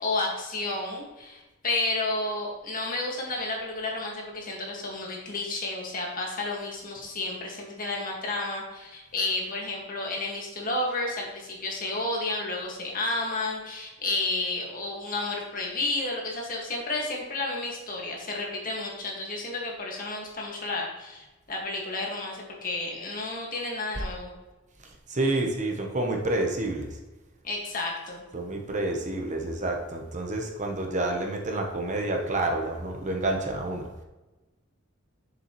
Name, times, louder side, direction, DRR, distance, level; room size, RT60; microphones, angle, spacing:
voice 1, 0.0-24.3 27.4-28.2, left 2 dB, 45° left, -1 dB, 1.8 m, -31 dB
voice 2, 24.8-27.0 28.3-33.9, right 2 dB, 40° right, 2 dB, 0.9 m, -29 dB
7.0 x 6.9 x 3.1 m, 1.1 s
head